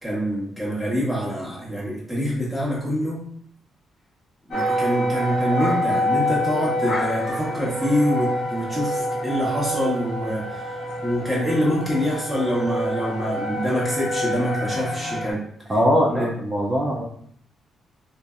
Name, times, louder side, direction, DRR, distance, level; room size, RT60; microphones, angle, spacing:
voice 1, 0.0-3.3 4.5-15.8 16.1-16.3, equal, 5° left, -6 dB, 1.2 m, -25 dB
sound 1, 4.5-15.3, equal, 65° left, 0.6 m, -26 dB
voice 2, 15.7-17.0, equal, 30° right, -3 dB, 0.5 m, -21 dB
2.5 x 2.1 x 2.4 m, 0.64 s
cardioid pair, 70°, 0 cm